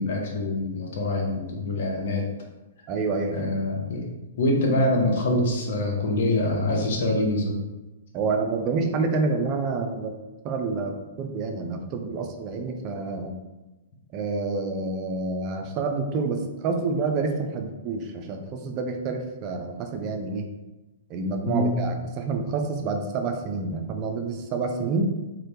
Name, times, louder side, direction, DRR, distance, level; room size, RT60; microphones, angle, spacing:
voice 1, 0.0-2.3 3.3-4.1 4.4-7.6 21.5-21.7, left 1 dB, 60° left, -1 dB, 0.6 m, -25 dB
voice 2, 2.9-3.6 8.1-10.1 10.4-13.4 14.1-20.5 21.1-25.1, right 4 dB, 35° right, 4 dB, 0.3 m, -28 dB
2.2 x 2.0 x 2.9 m, 1.1 s
hypercardioid pair, 120°, 0 cm